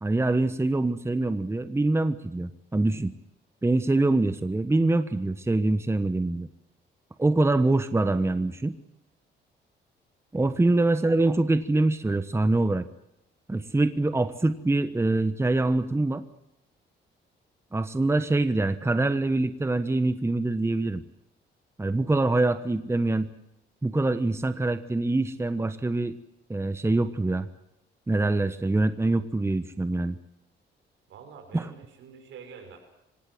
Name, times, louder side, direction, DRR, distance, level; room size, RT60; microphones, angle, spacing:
voice 1, 0.0-3.1 3.6-6.5 7.2-8.8 10.3-12.8 13.5-16.2 17.7-21.0 21.8-23.3 23.8-26.2 26.5-27.5 28.1-30.2 31.5-31.7, right 2 dB, 15° right, 11 dB, 1.2 m, -24 dB
voice 2, 10.4-10.9 31.1-32.8, right 6 dB, 75° right, 6 dB, 6.0 m, -47 dB
25.5 x 17.5 x 7.9 m, 0.84 s
cardioid pair, 90°, 20 cm